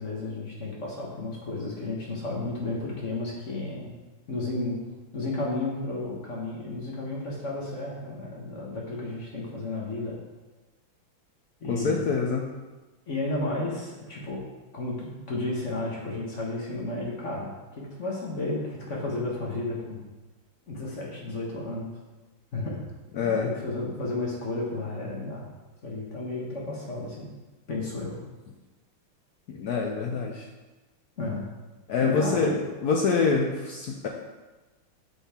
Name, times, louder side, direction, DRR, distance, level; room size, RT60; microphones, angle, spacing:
voice 1, 0.0-4.0 4.3-4.9 5.1-10.2 11.6-12.2 13.1-14.4 14.7-20.0 20.7-21.9 22.5-22.8 23.2-25.5 25.8-27.3 27.7-28.2 31.2-31.5 32.0-32.5, left 2 dB, 40° left, -3 dB, 1.4 m, -32 dB
voice 2, 11.7-12.4 23.2-23.5 29.5-30.4 31.9-32.5 32.8-34.1, left 5 dB, 70° left, 1 dB, 0.9 m, -25 dB
6.9 x 5.6 x 4.3 m, 1.2 s
omnidirectional pair, 2.3 m